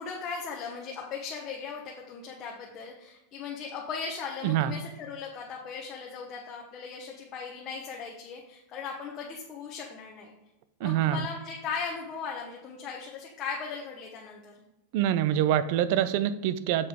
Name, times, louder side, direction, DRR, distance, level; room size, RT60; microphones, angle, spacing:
voice 1, 0.0-10.3 10.8-14.5, left 5 dB, 30° left, -1 dB, 1.0 m, -38 dB
voice 2, 10.8-11.3 14.9-16.9, right 11 dB, 50° right, 15 dB, 0.5 m, -25 dB
7.6 x 7.2 x 3.6 m, 0.96 s
supercardioid pair, 165°, 0 cm